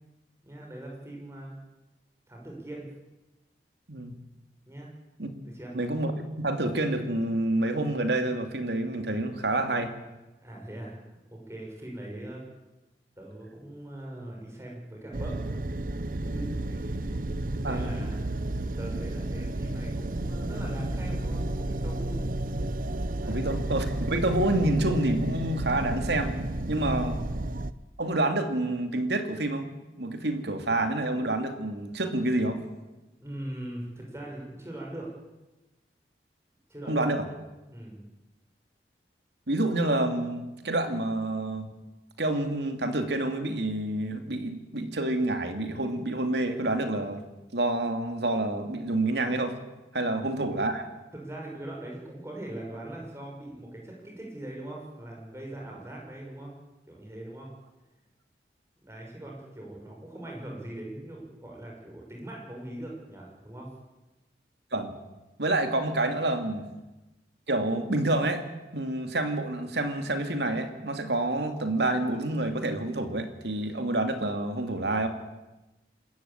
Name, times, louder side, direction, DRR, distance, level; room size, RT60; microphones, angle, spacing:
voice 1, 0.4-1.6 2.3-2.9 4.7-4.9 5.4-5.7 10.4-12.4 13.2-15.6 16.2-17.2 17.6-18.2 18.8-22.2 23.2-23.5 26.8-27.2 33.2-35.1 36.7-37.1 37.7-38.0 50.1-50.2 51.1-56.5 56.9-57.5 58.8-63.7, right 1 dB, 15° right, -1 dB, 6.1 m, -41 dB
voice 2, 5.7-6.1 6.4-9.9 17.6-17.9 23.3-26.4 26.7-27.2 28.0-29.7 30.0-32.6 36.9-37.2 39.5-41.7 42.2-47.2 47.5-49.5 49.9-50.8 64.7-64.9 65.4-66.7 67.5-68.4 68.7-75.1, right 2 dB, 75° right, 6 dB, 2.7 m, -28 dB
sound 1, 15.1-27.7, right 1 dB, 50° right, 0.8 m, -32 dB
27.0 x 14.0 x 8.9 m, 1.1 s
head